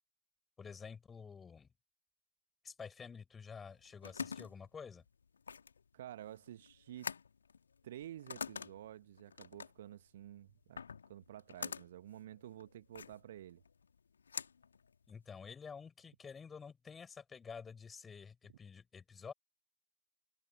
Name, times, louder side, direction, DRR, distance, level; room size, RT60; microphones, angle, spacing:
voice 1, 0.6-1.7 2.6-5.0 15.1-19.3, left 6 dB, 15° left, 5.3 m, -50 dB
sound 1, 3.6-15.5, left 6 dB, 70° left, 3.3 m, -47 dB
voice 2, 5.9-7.1 7.8-10.8 11.1-13.6, right 12 dB, 60° right, 1.4 m, -51 dB
figure-of-eight pair, 90°, 0 cm